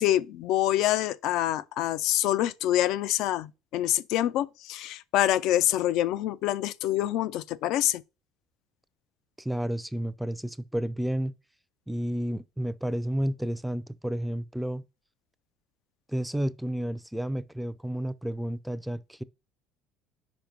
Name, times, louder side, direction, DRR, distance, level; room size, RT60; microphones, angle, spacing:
voice 1, 0.0-8.0, left 13 dB, 65° left, 0.4 m, -26 dB
voice 2, 9.4-11.3 11.9-14.8 16.1-19.2, right 1 dB, 5° right, 0.4 m, -31 dB
5.2 x 5.1 x 4.5 m
supercardioid pair, 100°, 0 cm